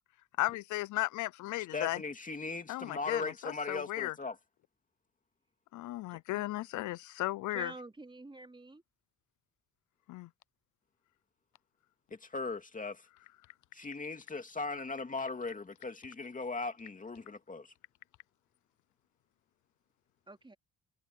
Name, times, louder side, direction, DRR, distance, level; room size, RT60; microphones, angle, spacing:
voice 1, 0.4-2.0 2.7-4.1 5.7-7.7 10.1-10.3, left 17 dB, 80° left, 0.5 m, -35 dB
voice 2, 1.7-4.4 12.1-13.1 13.7-17.7, left 3 dB, 25° left, 2.4 m, -38 dB
voice 3, 6.1-6.5 7.5-8.8 20.3-20.6, right 2 dB, 15° right, 4.4 m, -47 dB
cardioid pair, 90°, 30 cm